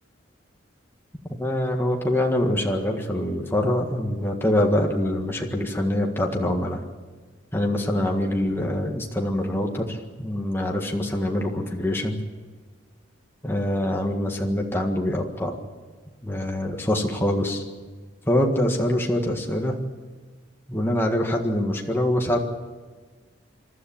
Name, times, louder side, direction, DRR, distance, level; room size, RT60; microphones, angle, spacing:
voice 1, 1.4-6.8 7.5-12.2 13.4-15.6 16.2-17.6 18.3-19.8 20.7-22.4, left 1 dB, 10° left, 1 dB, 1.7 m, -24 dB
27.5 x 12.5 x 8.8 m, 1.4 s
head